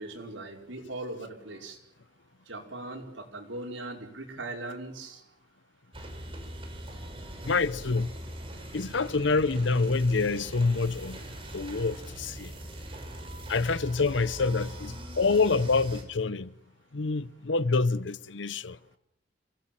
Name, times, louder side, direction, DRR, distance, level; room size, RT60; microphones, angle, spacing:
voice 1, 0.0-1.8 2.5-5.2, right 2 dB, 90° right, 4.8 m, -39 dB
sound 1, 5.9-16.0, right 1 dB, 30° right, 4.9 m, -42 dB
voice 2, 7.4-8.1 8.7-11.2 11.5-12.5 13.5-16.5 16.9-18.8, left 4 dB, 75° left, 0.8 m, -27 dB
28.0 x 17.0 x 7.4 m
head